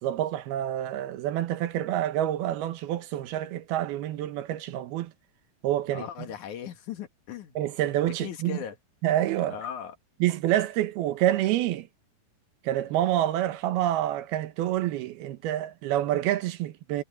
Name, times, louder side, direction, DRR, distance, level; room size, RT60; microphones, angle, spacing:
voice 1, 0.0-5.1 5.6-6.1 7.6-8.6 9.0-9.6 10.2-11.9 12.6-17.0, right 12 dB, 70° right, 3.0 m, -27 dB
voice 2, 5.9-7.6 8.2-8.8 9.5-10.0, left 9 dB, 55° left, 2.6 m, -38 dB
omnidirectional pair, 4.8 m